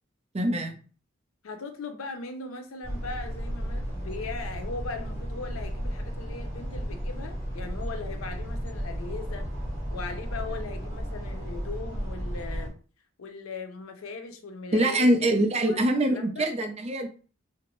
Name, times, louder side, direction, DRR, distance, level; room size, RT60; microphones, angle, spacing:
voice 1, 0.3-0.8 14.7-17.1, right 1 dB, 30° right, 3 dB, 0.5 m, -24 dB
voice 2, 1.4-9.5 9.9-12.7 13.2-15.1 15.6-15.8 16.1-16.5, left 4 dB, 85° left, 5 dB, 0.5 m, -39 dB
sound 1, 2.8-12.7, equal, 20° left, 1.3 m, -34 dB
2.5 x 2.1 x 2.9 m, 0.38 s
head